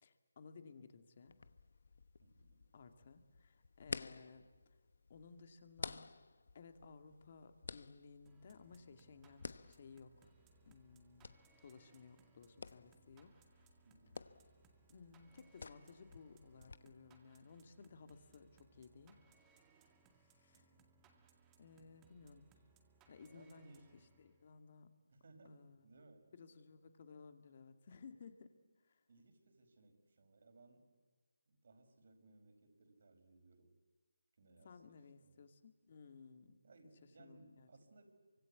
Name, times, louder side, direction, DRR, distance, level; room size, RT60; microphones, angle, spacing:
voice 1, 0.0-1.3 2.7-4.8 5.1-6.1 6.5-10.3 10.7-11.4 11.6-13.6 14.9-19.2 20.2-20.7 21.6-22.5 23.1-24.9 25.4-25.8 26.3-28.5 28.8-29.0 34.6-36.6 37.2-37.7, left 5 dB, 35° left, 8 dB, 2.3 m, -58 dB
sound 1, 1.3-16.8, left 4 dB, 55° left, 1.0 m, -53 dB
voice 2, 2.2-2.7 13.8-14.2 20.5-20.9 23.2-24.1 25.1-26.3 29.1-30.9 31.5-33.8 34.4-35.4 36.6-38.2, right 2 dB, 50° right, 6 dB, 5.1 m, -64 dB
sound 2, 8.3-24.6, right 5 dB, 10° right, 2.1 m, -70 dB
27.5 x 25.0 x 8.4 m, 1.4 s
figure-of-eight pair, 165°, 0 cm